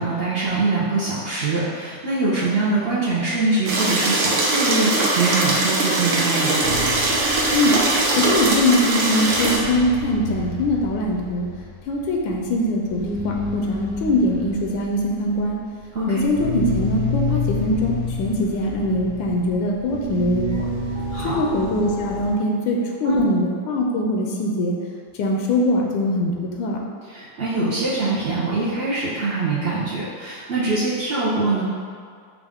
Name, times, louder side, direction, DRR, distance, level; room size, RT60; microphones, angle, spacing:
voice 1, 0.0-6.6 15.9-16.2 21.1-21.4 23.0-23.2 27.1-31.6, right 3 dB, 70° right, -10 dB, 0.5 m, -23 dB
sound 1, 3.7-9.6, right 2 dB, 85° right, 1.5 m, -21 dB
sound 2, 6.6-9.0 9.2-22.3, left 1 dB, 60° left, 0.9 m, -29 dB
voice 2, 8.1-11.5 11.9-15.6 16.1-20.7 21.2-24.8 25.1-26.8, left 1 dB, 85° left, 0 dB, 1.3 m, -22 dB
5.4 x 2.4 x 3.5 m, 2.1 s
omnidirectional pair, 2.0 m